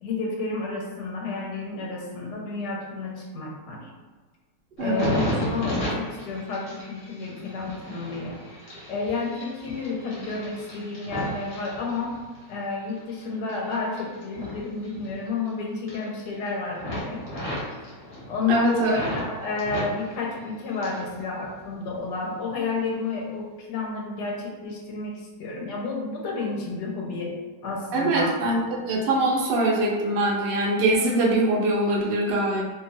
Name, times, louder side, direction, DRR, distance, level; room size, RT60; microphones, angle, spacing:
voice 1, 0.0-3.9 4.8-8.4 8.9-12.2 12.5-17.2 18.3-27.3 27.6-28.3, left 4 dB, 85° left, -1 dB, 1.2 m, -31 dB
sound 1, 4.8-12.4 12.9-15.5 15.7-16.5 16.8-19.3 19.6-21.1 21.4-22.2 22.7-22.9, left 1 dB, 50° left, 0.8 m, -34 dB
voice 2, 4.8-5.2 18.5-19.0 27.9-32.6, right 1 dB, 80° right, -3 dB, 0.5 m, -23 dB
2.8 x 2.5 x 2.5 m, 1.3 s
omnidirectional pair, 1.8 m